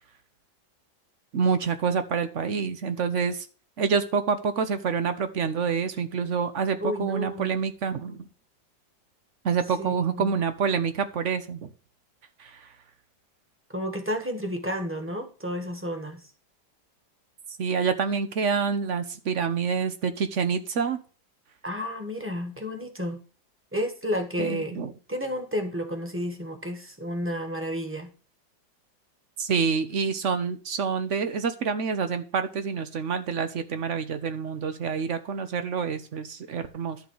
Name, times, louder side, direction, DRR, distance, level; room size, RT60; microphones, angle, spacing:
voice 1, 1.3-3.5 3.8-8.2 9.4-11.7 12.4-12.7 17.6-21.0 24.4-24.9 29.4-37.0, right 6 dB, 55° right, 10 dB, 0.8 m, -27 dB
voice 2, 6.8-7.5 9.8-10.3 13.7-16.3 21.6-23.2 23.7-24.8 25.1-28.1, equal, 5° right, 4 dB, 1.3 m, -31 dB
11.5 x 3.9 x 7.7 m, 0.38 s
omnidirectional pair, 2.1 m